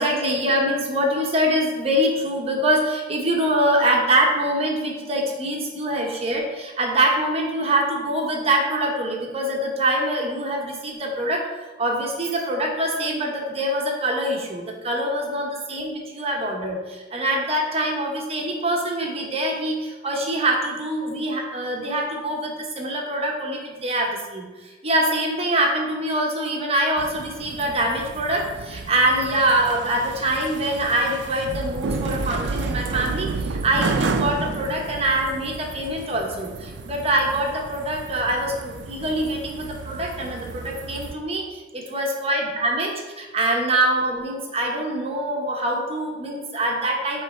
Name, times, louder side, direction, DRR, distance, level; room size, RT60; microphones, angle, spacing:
voice 1, 0.0-11.4 11.8-47.2, right 1 dB, 35° right, 0 dB, 1.0 m, -24 dB
sound 1, 27.0-41.1, right 4 dB, 90° right, 0.4 m, -31 dB
8.0 x 3.2 x 4.3 m, 1.3 s
head